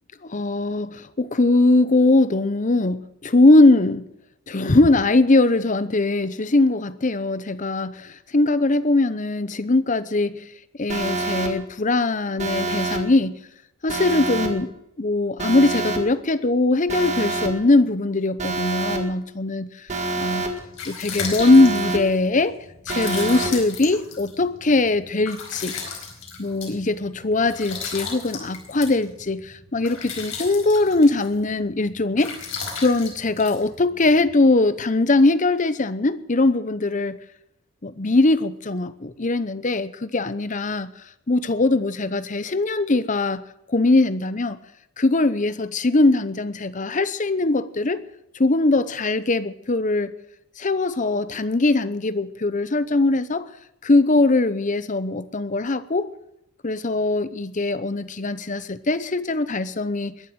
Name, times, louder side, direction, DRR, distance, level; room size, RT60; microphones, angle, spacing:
voice 1, 0.2-4.1 4.5-10.4 10.8-13.4 13.8-19.9 20.2-20.5 20.9-22.6 22.9-25.8 26.4-32.3 32.8-37.2 37.8-40.9 41.3-44.6 45.0-48.0 48.3-50.1 50.6-53.5 53.8-56.1 56.6-60.1, left 2 dB, 35° left, 0.8 m, -21 dB
Alarm, 10.9-11.5 12.4-13.0 13.9-14.5 15.4-16.0 16.9-17.5 18.4-19.0 19.9-20.5 21.4-22.0 22.9-23.5, right 2 dB, 30° right, 2.1 m, -26 dB
sound 1, 20.5-34.3, left 5 dB, 65° left, 4.6 m, -36 dB
21.5 x 7.8 x 7.9 m
head